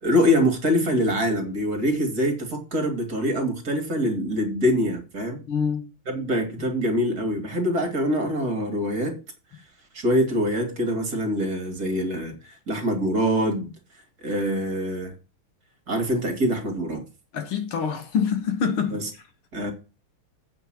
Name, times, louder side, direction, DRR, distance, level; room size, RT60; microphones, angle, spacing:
voice 1, 0.0-5.4 6.1-9.2 9.9-13.7 14.2-15.1 15.9-17.0 18.9-19.1 19.5-19.7, equal, 45° right, 2.8 m, -24 dB
voice 2, 5.5-5.9 17.3-19.0, left 6 dB, 80° left, 2.4 m, -25 dB
8.7 x 5.4 x 7.6 m
omnidirectional pair, 2.4 m